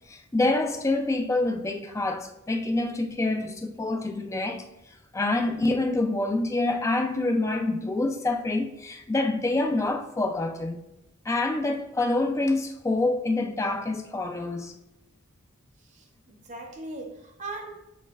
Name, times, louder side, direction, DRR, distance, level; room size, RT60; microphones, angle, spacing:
voice 1, 0.1-4.6 5.1-10.8 11.3-14.7, left 2 dB, 15° left, 0.3 m, -26 dB
voice 2, 15.9-17.7, right 2 dB, 35° right, 0.7 m, -39 dB
5.5 x 3.1 x 2.3 m
head